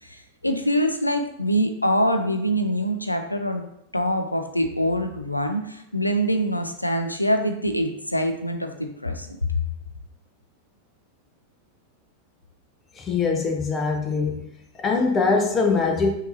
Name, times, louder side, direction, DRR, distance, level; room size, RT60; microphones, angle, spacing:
voice 1, 0.0-3.6 3.9-9.6, equal, 85° left, 6 dB, 0.4 m, -24 dB
voice 2, 13.0-14.4 14.8-16.1, left 4 dB, 20° left, 2 dB, 0.9 m, -22 dB
5.6 x 2.9 x 2.7 m, 0.77 s
figure-of-eight pair, 90°, 0 cm